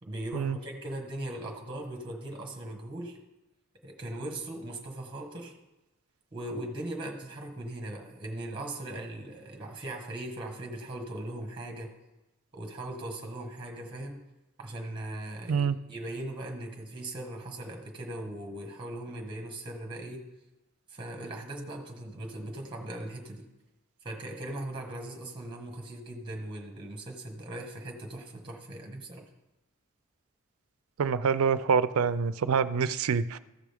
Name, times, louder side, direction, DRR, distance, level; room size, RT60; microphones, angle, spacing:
voice 1, 0.0-3.2 3.8-5.5 6.3-11.9 12.5-14.2 14.6-20.2 20.9-23.5 24.0-29.3, right 1 dB, 25° right, 2 dB, 1.2 m, -39 dB
voice 2, 31.0-33.4, right 6 dB, 85° right, 14 dB, 0.4 m, -26 dB
14.5 x 6.1 x 3.4 m, 1.0 s
head